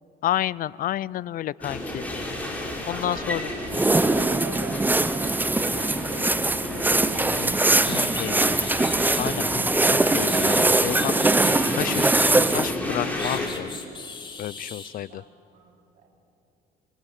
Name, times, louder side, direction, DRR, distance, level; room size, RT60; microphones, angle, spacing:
voice 1, 0.2-2.0 2.9-3.5 7.2-8.5 9.2-11.2 11.7-13.7 14.4-15.2, left 12 dB, 55° left, 22 dB, 0.5 m, -30 dB
sound 1, 1.6-13.5, left 1 dB, 10° left, 5.6 m, -32 dB
voice 2, 3.0-8.9 15.1-15.3 15.5-16.1, right 3 dB, 60° right, 0 dB, 7.9 m, -41 dB
sound 2, 3.7-12.8, right 2 dB, 10° right, 0.7 m, -22 dB
sound 3, 7.8-9.4 10.0-12.6 13.2-14.9, left 4 dB, 30° left, 3.5 m, -39 dB
26.5 x 25.0 x 9.0 m, 2.8 s
cardioid pair, 110°, 17 cm